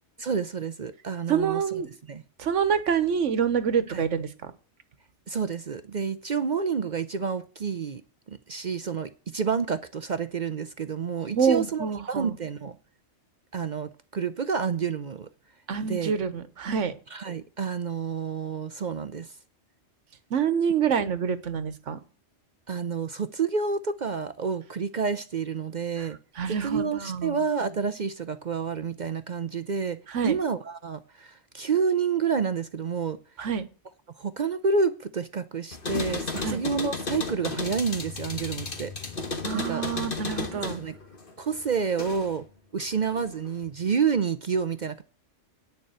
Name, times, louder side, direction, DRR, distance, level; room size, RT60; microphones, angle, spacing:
voice 1, 0.2-1.8 2.1-2.2 3.9-4.0 5.3-8.0 8.3-12.8 13.5-15.3 15.8-16.2 17.1-19.3 22.7-26.2 26.6-33.2 34.2-38.9 39.5-39.9 40.5-40.9 41.4-42.5 42.7-45.0, right 6 dB, 50° right, 0.7 m, -29 dB
voice 2, 1.3-1.9 2.4-4.5 11.3-12.3 15.7-16.9 20.3-22.0 26.0-26.1 26.4-27.4 30.1-30.3 33.4-33.6 36.4-36.6 39.4-40.8, right 7 dB, 85° right, 1.4 m, -26 dB
sound 1, 35.7-42.4 42.8-43.6, left 3 dB, 50° left, 1.7 m, -34 dB
9.8 x 6.8 x 7.8 m
omnidirectional pair, 1.2 m